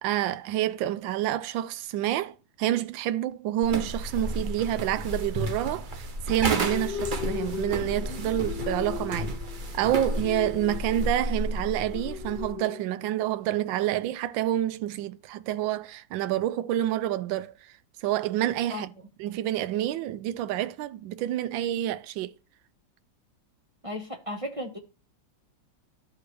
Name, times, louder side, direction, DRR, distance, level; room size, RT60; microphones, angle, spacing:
voice 1, 0.0-9.3 9.7-17.5 18.0-18.9 19.2-22.3, right 12 dB, 85° right, 1.3 m, -28 dB
sound 1, 3.6-12.5, right 1 dB, 60° right, 0.5 m, -32 dB
sound 2, 6.6-13.4, left 10 dB, 70° left, 1.3 m, -38 dB
voice 2, 23.8-24.8, left 1 dB, 20° right, 1.1 m, -35 dB
13.0 x 4.8 x 3.2 m
omnidirectional pair, 2.0 m